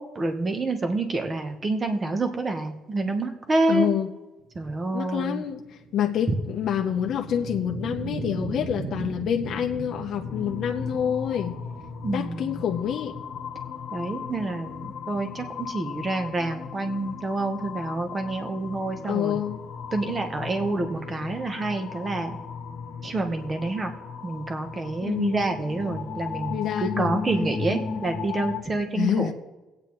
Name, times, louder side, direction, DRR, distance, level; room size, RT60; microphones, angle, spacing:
voice 1, 0.0-3.9 4.5-5.4 12.0-12.6 13.9-19.4 19.9-22.4 23.0-23.9 24.2-29.3, right 2 dB, 20° right, 6 dB, 1.0 m, -28 dB
voice 2, 3.7-4.1 4.9-5.6 5.9-11.5 12.1-13.2 19.1-19.7 20.1-20.3 25.0-25.4 26.5-27.3 28.9-29.3, left 9 dB, 55° left, 3 dB, 0.7 m, -27 dB
sound 1, 4.6-15.3, right 3 dB, 55° right, 1.6 m, -38 dB
sound 2, 10.2-28.6, left 5 dB, 85° left, 1.1 m, -36 dB
22.5 x 8.7 x 3.1 m, 1.1 s
cardioid pair, 165°, 0 cm